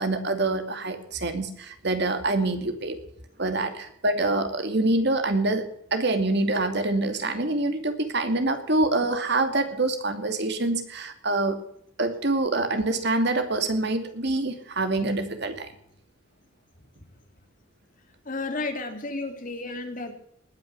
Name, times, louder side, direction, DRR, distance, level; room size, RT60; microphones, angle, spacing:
voice 1, 0.0-3.0 3.4-11.6 12.0-15.7, right 2 dB, 55° right, 8 dB, 2.5 m, -25 dB
voice 2, 18.2-20.1, left 3 dB, 45° left, 5 dB, 2.9 m, -32 dB
20.0 x 9.7 x 6.8 m, 0.69 s
head